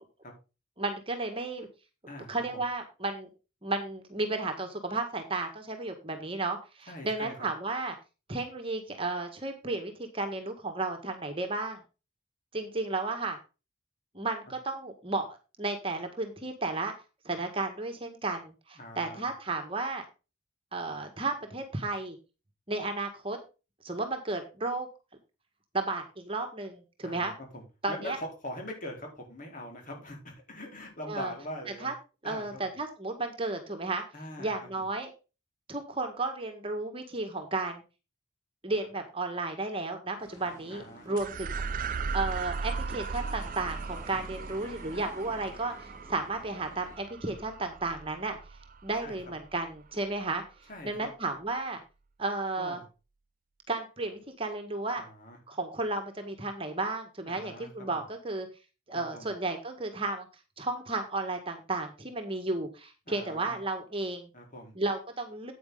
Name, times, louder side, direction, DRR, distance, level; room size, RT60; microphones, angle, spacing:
voice 1, 0.8-1.7 2.3-3.3 3.6-8.0 8.3-11.8 12.5-13.4 14.1-16.9 17.3-20.0 20.7-22.2 22.7-23.4 23.8-24.9 25.7-27.3 27.8-28.2 31.1-31.3 31.8-31.9 32.2-34.0 34.4-35.1 35.7-37.8 38.6-41.7 42.1-48.4 48.8-50.4 50.8-51.8 52.2-52.8 53.7-55.0 55.5-58.5 58.9-60.3 60.6-64.3 64.8-65.5, right 2 dB, 30° right, 5 dB, 1.8 m, -33 dB
voice 2, 2.1-2.6 6.9-7.5 18.8-19.3 27.0-31.9 32.2-32.6 34.1-34.9 40.7-41.1 49.0-49.3 50.7-51.1 52.6-52.8 54.9-55.4 57.2-58.0 58.9-59.3 63.1-63.6 64.3-64.7, left 1 dB, 40° left, 1 dB, 4.6 m, -43 dB
sound 1, 40.2-47.0, equal, 15° left, 4.3 m, -51 dB
sound 2, 41.2-49.8, right 4 dB, 45° right, 0.5 m, -38 dB
9.5 x 8.9 x 3.8 m, 0.30 s
head